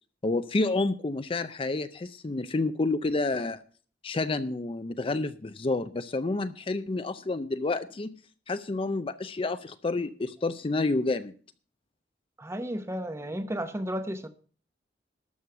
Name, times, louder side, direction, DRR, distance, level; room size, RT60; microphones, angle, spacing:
voice 1, 0.2-3.6 4.0-8.1 8.5-11.3, left 3 dB, 30° left, 0.5 m, -29 dB
voice 2, 12.4-14.3, equal, 15° right, 0.9 m, -33 dB
12.5 x 6.4 x 6.7 m
head